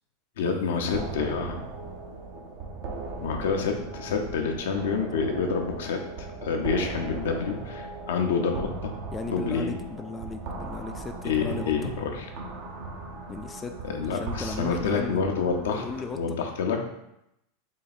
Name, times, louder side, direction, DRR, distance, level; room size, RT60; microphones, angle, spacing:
voice 1, 0.4-1.6 3.2-8.9 9.3-9.8 11.2-12.3 13.9-15.9 16.2-16.9, left 5 dB, 80° left, 3 dB, 0.6 m, -28 dB
sound 1, 0.9-16.2, right 3 dB, 60° right, 0.7 m, -38 dB
voice 2, 9.1-11.9 13.3-13.8 14.1-15.2 15.7-16.4, left 3 dB, 20° left, 5 dB, 0.3 m, -36 dB
3.9 x 2.3 x 4.1 m, 0.82 s
hypercardioid pair, 105°, 0 cm